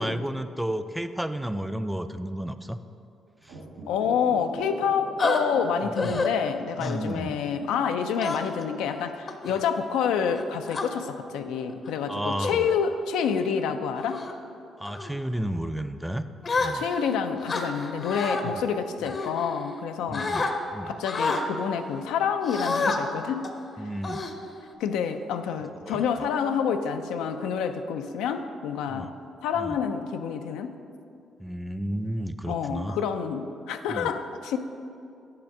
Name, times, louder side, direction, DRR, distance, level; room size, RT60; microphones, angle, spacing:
voice 1, 0.0-2.8 3.4-3.6 5.8-6.2 6.8-7.4 12.1-12.7 14.8-16.2 16.5-16.9 18.4-18.6 20.1-20.9 23.8-24.2 25.8-26.0 28.9-29.1 29.6-29.8 31.4-33.0 33.9-34.1, right 1 dB, 5° right, 10 dB, 0.3 m, -32 dB
sound 1, 3.4-6.8 7.1-7.2, right 1 dB, 85° right, 0.9 m, -42 dB
voice 2, 3.9-14.2 16.6-20.3 20.9-23.5 23.8-23.9 24.8-29.1 29.4-30.7 32.5-34.6, left 7 dB, 85° left, 7 dB, 0.3 m, -28 dB
sound 2, 5.2-5.4 6.0-6.3 6.8-7.1 8.2-8.7 9.3-9.6 10.3-10.9 11.7-11.9 12.4-12.8 13.3-13.5 14.0-14.3 14.9-15.1 16.4-17.1 17.5-18.4 19.1-19.8 20.1-20.5 21.0-21.4 22.5-23.0 23.4-23.6 24.0-24.7, left 3 dB, 40° left, 0.6 m, -29 dB
7.8 x 3.4 x 5.9 m, 2.6 s
supercardioid pair, 65°, 0 cm